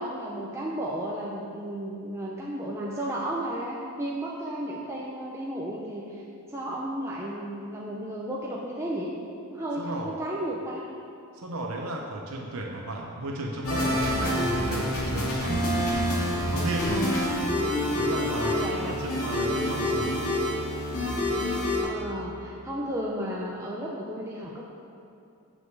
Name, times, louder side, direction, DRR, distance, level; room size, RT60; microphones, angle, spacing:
voice 1, 0.0-9.1 9.5-10.8 18.3-19.2 21.8-24.7, right 1 dB, 10° right, -4 dB, 0.7 m, -33 dB
voice 2, 9.8-10.1 11.4-15.7 16.5-17.1 18.0-20.3, right 1 dB, 75° right, 0 dB, 0.9 m, -34 dB
sound 1, 13.6-21.8, left 1 dB, 75° left, 2.6 m, -27 dB
7.6 x 6.4 x 7.9 m, 2.6 s
head